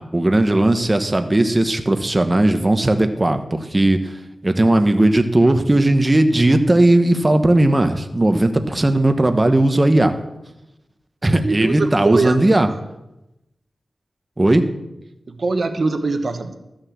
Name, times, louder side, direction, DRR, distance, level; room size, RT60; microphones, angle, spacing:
voice 1, 0.0-4.1 4.4-10.1 11.2-12.7 14.4-14.6, right 1 dB, 25° right, 7 dB, 1.1 m, -16 dB
voice 2, 11.4-12.6 15.3-16.5, right 3 dB, 60° right, 7 dB, 1.2 m, -22 dB
13.5 x 6.5 x 7.3 m, 0.91 s
wide cardioid pair, 90°, 0 cm